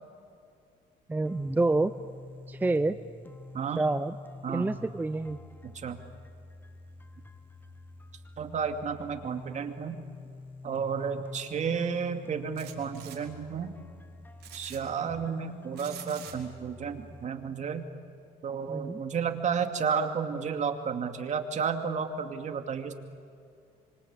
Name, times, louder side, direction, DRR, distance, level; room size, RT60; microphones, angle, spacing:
voice 1, 1.1-1.9 2.5-3.0 3.8-4.1 4.5-5.4 18.7-19.0, right 2 dB, 10° right, 11 dB, 0.7 m, -27 dB
sound 1, 1.2-17.3, left 2 dB, 10° left, 1.3 m, -48 dB
voice 2, 5.6-6.0 8.4-10.1 10.6-13.7 14.5-17.9 18.4-22.9, right 6 dB, 45° right, 6 dB, 2.5 m, -32 dB
sound 2, 12.6-13.2 14.4-14.8 15.8-16.3, right 11 dB, 70° right, 4.5 m, -46 dB
26.0 x 25.0 x 8.6 m, 2.5 s
cardioid pair, 110°, 17 cm